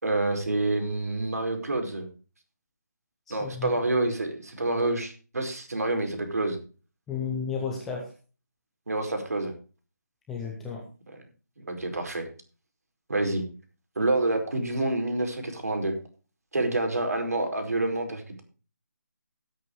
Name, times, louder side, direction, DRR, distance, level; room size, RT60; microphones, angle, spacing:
voice 1, 0.0-2.1 3.3-6.6 8.9-9.5 11.6-12.3 13.1-13.4 13.9-15.9 16.5-18.4, right 2 dB, 60° right, 5 dB, 4.9 m, -27 dB
voice 2, 3.3-3.7 7.1-8.1 10.3-10.8, left 6 dB, ahead, -1 dB, 0.5 m, -33 dB
18.0 x 8.3 x 3.2 m, 0.35 s
hypercardioid pair, 180°, 9 cm